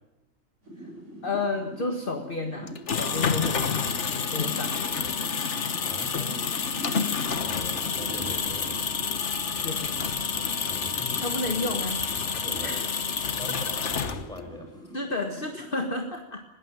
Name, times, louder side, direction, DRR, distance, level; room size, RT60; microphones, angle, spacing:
sound 1, 0.6-15.7, right 1 dB, 60° right, 7.8 m, -45 dB
voice 1, 1.2-3.8 4.1-5.2 9.6-10.2 11.2-12.0 12.6-12.9 14.9-16.4, left 2 dB, 40° left, 4 dB, 1.8 m, -32 dB
sound 2, 2.7-14.5, left 6 dB, 60° left, 1.6 m, -29 dB
voice 2, 5.9-6.5 7.4-8.9 10.6-11.2 11.4-11.6 12.3-12.8 13.4-15.0, left 1 dB, 5° left, 1 dB, 8.0 m, -41 dB
sound 3, 7.5-13.5, right 1 dB, 30° right, 2.8 m, -49 dB
21.5 x 18.5 x 9.0 m, 0.92 s
omnidirectional pair, 1.4 m